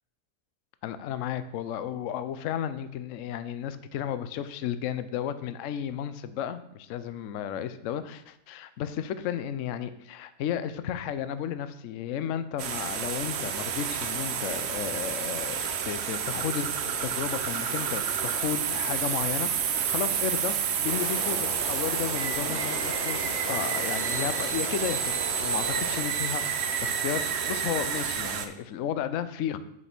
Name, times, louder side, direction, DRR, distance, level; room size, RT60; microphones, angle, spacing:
voice 1, 0.8-29.6, left 9 dB, 65° left, 12 dB, 0.8 m, -33 dB
sound 1, 12.6-28.5, right 7 dB, 60° right, 0.7 m, -29 dB
sound 2, 20.9-26.0, left 3 dB, 90° left, 1.6 m, -38 dB
6.4 x 5.2 x 5.9 m, 0.76 s
omnidirectional pair, 1.7 m